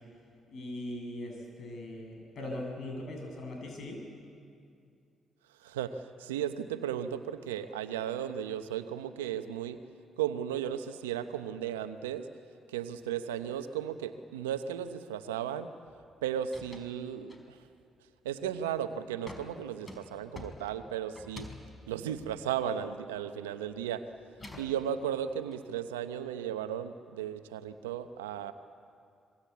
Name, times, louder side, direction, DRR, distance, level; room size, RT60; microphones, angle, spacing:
voice 1, 0.5-4.0, left 1 dB, 60° left, 1 dB, 7.8 m, -40 dB
voice 2, 5.6-9.8 10.2-12.3 12.7-15.7 16.2-17.6 18.2-21.5 21.9-24.1 24.6-28.5, right 9 dB, 90° right, 10 dB, 0.9 m, -35 dB
sound 1, 15.9-16.1 16.4-17.0 17.3-17.8 18.3-18.7 19.3-23.3 23.6-25.6, left 2 dB, 35° left, 4.6 m, -49 dB
26.5 x 22.5 x 8.4 m, 2.4 s
hypercardioid pair, 45°, 0 cm